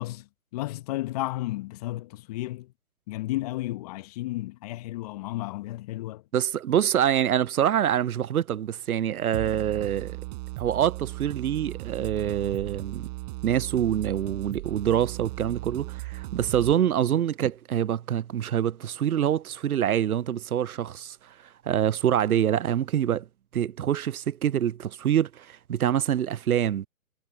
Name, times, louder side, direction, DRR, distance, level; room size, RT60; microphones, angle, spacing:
voice 1, 0.0-2.7 3.1-6.2, left 17 dB, 25° left, 1.7 m, -33 dB
voice 2, 6.3-10.2 10.6-13.1 13.4-23.3 23.5-26.9, right 10 dB, 85° right, 0.6 m, -25 dB
sound 1, 9.3-16.7, right 22 dB, 30° right, 6.2 m, -37 dB
figure-of-eight pair, 145°, 42 cm